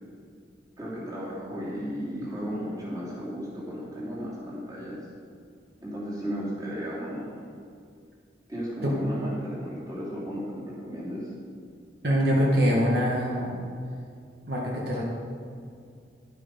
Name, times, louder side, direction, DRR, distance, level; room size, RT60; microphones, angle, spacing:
voice 1, 0.8-5.0 5.8-7.3 8.5-11.3, equal, 20° right, -7 dB, 2.9 m, -34 dB
voice 2, 12.0-13.5 14.5-15.0, equal, 60° right, -3 dB, 1.5 m, -24 dB
11.5 x 8.1 x 5.3 m, 2.3 s
head